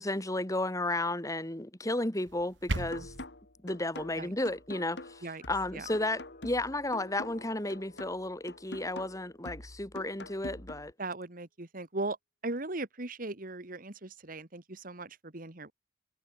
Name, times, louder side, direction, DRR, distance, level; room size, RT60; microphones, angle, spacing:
voice 1, 0.0-3.1 3.6-10.9, left 2 dB, 20° left, 2.5 m, -33 dB
sound 1, 2.2-3.3, right 2 dB, 90° right, 2.3 m, -36 dB
sound 2, 2.9-10.9, left 1 dB, 70° left, 3.2 m, -46 dB
sound 3, 4.7-10.2, left 3 dB, 50° left, 4.9 m, -56 dB
voice 2, 11.0-12.2 12.4-15.7, right 2 dB, 50° right, 2.0 m, -38 dB
head